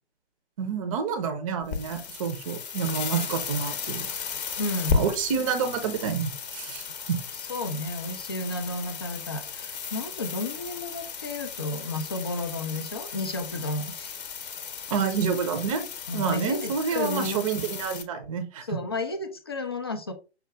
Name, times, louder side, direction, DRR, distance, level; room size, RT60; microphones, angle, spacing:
voice 1, 0.6-4.1 4.9-7.2 14.9-15.9 16.1-18.8, right 6 dB, 30° right, 7 dB, 0.6 m, -28 dB
sound 1, 1.6-18.0, left 6 dB, 40° left, 0.7 m, -35 dB
voice 2, 4.6-5.1 7.5-14.2 16.1-17.4 18.7-20.1, left 2 dB, 25° left, 8 dB, 0.3 m, -32 dB
5.6 x 2.3 x 3.3 m, 0.31 s
figure-of-eight pair, 130°, 34 cm